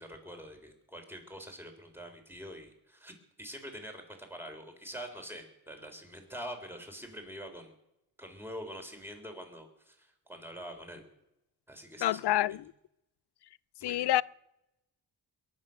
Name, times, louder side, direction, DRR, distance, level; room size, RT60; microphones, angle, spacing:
voice 1, 0.0-7.7 8.2-11.0 11.7-12.6 13.8-14.1, equal, 5° right, 3.6 m, -45 dB
voice 2, 12.0-12.7 13.8-14.2, left 14 dB, 70° left, 0.5 m, -27 dB
22.0 x 9.8 x 6.4 m
cardioid pair, 85°, 42 cm